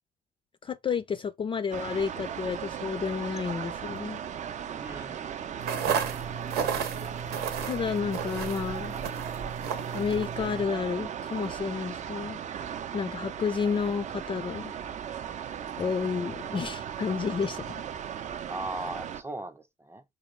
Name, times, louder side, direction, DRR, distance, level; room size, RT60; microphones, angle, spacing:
voice 1, 0.6-4.2 7.6-9.0 9.9-12.4 12.9-14.7 15.8-17.8, left 6 dB, 30° left, 0.4 m, -31 dB
sound 1, 1.7-19.2, right 8 dB, 45° right, 0.5 m, -37 dB
voice 2, 4.8-5.7 18.5-20.0, right 2 dB, 15° right, 0.8 m, -39 dB
sound 2, 5.6-10.6, right 7 dB, 75° right, 0.9 m, -33 dB
5.1 x 2.3 x 3.2 m
supercardioid pair, 85°, 16 cm